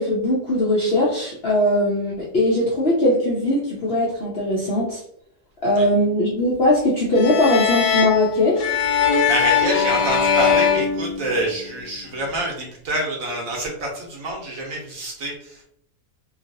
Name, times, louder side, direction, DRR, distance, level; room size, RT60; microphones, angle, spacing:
voice 1, 0.0-5.0 5.6-8.7, left 1 dB, 55° left, -6 dB, 0.7 m, -20 dB
sound 1, 7.1-11.8, left 7 dB, 80° left, 1.1 m, -20 dB
voice 2, 9.2-15.7, right 1 dB, 60° right, 0 dB, 1.1 m, -27 dB
2.9 x 2.7 x 2.7 m, 0.69 s
omnidirectional pair, 1.8 m